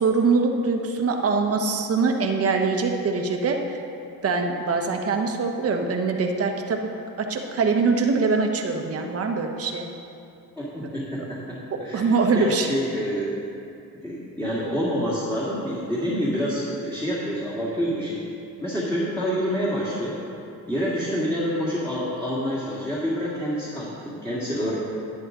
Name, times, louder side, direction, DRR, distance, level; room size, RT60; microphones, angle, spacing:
voice 1, 0.0-3.8 4.2-6.8 7.2-9.9 11.7-12.7, right 4 dB, 40° right, 3 dB, 1.2 m, -23 dB
voice 2, 10.6-13.3 14.0-18.2 18.6-20.2 20.7-24.8, equal, 5° left, -8 dB, 2.1 m, -27 dB
11.0 x 10.0 x 3.9 m, 2.7 s
cardioid pair, 115°, 37 cm